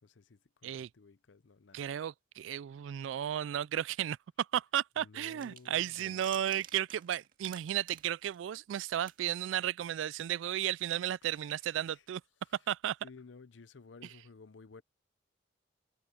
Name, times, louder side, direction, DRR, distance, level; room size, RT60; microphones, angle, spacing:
voice 1, 0.0-1.9 5.0-6.3 11.2-12.1 12.4-12.7 13.0-14.8, left 4 dB, 75° left, 0.6 m, -56 dB
voice 2, 1.7-12.2 12.7-13.0, right 11 dB, 80° right, 0.3 m, -34 dB
sound 1, 5.4-8.8 9.1-9.2, right 9 dB, 50° right, 2.0 m, -52 dB
head